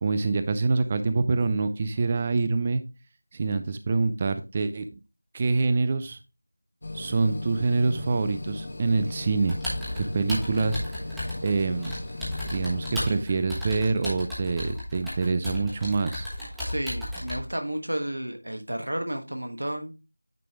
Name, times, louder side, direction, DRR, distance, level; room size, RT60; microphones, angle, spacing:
voice 1, 0.0-2.8 3.3-4.8 5.3-6.2 6.9-9.6 10.0-11.0 11.4-11.9 12.5-16.3, right 3 dB, 20° right, 11 dB, 0.3 m, -25 dB
sound 1, 6.8-13.2, left 2 dB, 40° left, 1.1 m, -37 dB
Computer keyboard, 9.5-17.4, left 1 dB, ahead, 1.2 m, -34 dB
voice 2, 16.7-19.9, right 1 dB, 70° right, 5 dB, 1.4 m, -32 dB
9.2 x 3.4 x 3.6 m, 0.29 s
figure-of-eight pair, 175°, 0 cm